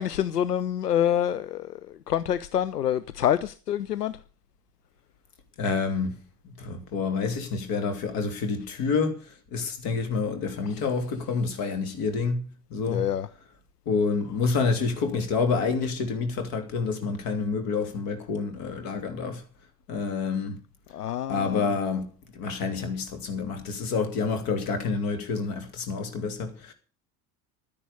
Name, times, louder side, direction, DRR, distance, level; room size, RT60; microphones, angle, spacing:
voice 1, 0.0-4.2 10.7-10.8 12.9-13.3 20.9-21.7, left 10 dB, 80° left, 0.6 m, -27 dB
voice 2, 5.6-6.2 6.4-12.4 12.7-13.0 13.9-19.4 19.9-20.6 21.3-22.1 22.3-26.7, left 4 dB, 45° left, 3.0 m, -28 dB
12.5 x 10.0 x 6.8 m
figure-of-eight pair, 70°, 47 cm